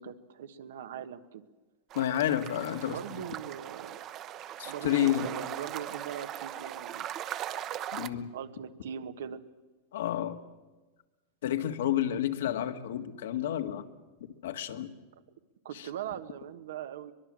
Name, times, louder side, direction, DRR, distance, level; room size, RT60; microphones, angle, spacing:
voice 1, 0.0-1.4 2.9-4.0 4.6-7.1 8.3-9.4 15.6-17.1, right 9 dB, 85° right, 10 dB, 1.5 m, -40 dB
sound 1, 1.9-8.1, right 11 dB, 35° right, 0.9 m, -39 dB
voice 2, 2.0-3.2 4.6-5.4 7.9-8.3 9.9-10.4 11.4-13.8 14.2-14.9 15.7-15.9, left 11 dB, 80° left, 7 dB, 1.8 m, -30 dB
23.0 x 21.5 x 7.6 m, 1.2 s
supercardioid pair, 145°, 0 cm